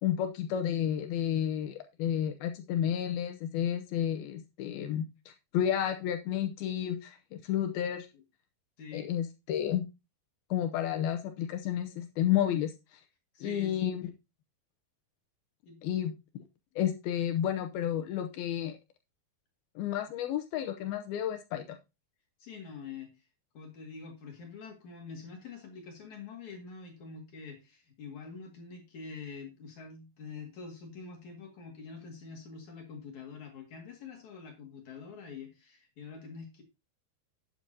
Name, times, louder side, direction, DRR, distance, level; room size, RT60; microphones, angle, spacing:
voice 1, 0.0-5.1 5.5-8.1 8.9-9.9 10.5-13.0 13.4-14.0 15.8-16.4 16.8-18.8 19.8-21.8, left 10 dB, 80° left, 7 dB, 2.6 m, -31 dB
voice 2, 8.8-9.1 13.3-13.8 15.7-15.8 22.4-23.1 23.5-36.6, left 5 dB, 55° left, 1 dB, 3.1 m, -45 dB
12.0 x 8.9 x 2.8 m, 0.25 s
omnidirectional pair, 4.5 m